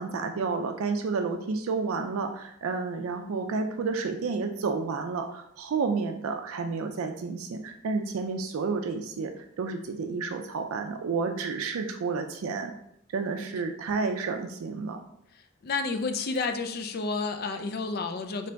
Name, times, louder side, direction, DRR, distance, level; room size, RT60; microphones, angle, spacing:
voice 1, 0.0-12.7 13.1-15.0, right 4 dB, 75° right, 5 dB, 0.4 m, -30 dB
voice 2, 15.6-18.5, left 4 dB, 45° left, 7 dB, 0.4 m, -30 dB
3.3 x 3.2 x 3.9 m, 0.75 s
head